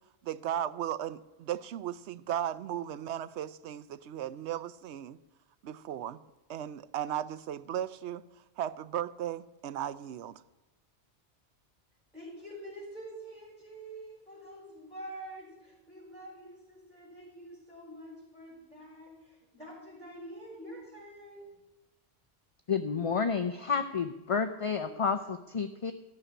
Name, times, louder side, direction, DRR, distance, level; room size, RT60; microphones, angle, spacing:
voice 1, 0.2-5.2 5.6-6.2 6.5-8.2 8.6-10.4, right 11 dB, 75° right, 0.9 m, -36 dB
voice 2, 12.1-21.5, right 1 dB, 5° left, 4.9 m, -47 dB
voice 3, 22.7-25.9, left 5 dB, 40° left, 0.5 m, -30 dB
14.0 x 6.7 x 9.9 m
omnidirectional pair, 1.2 m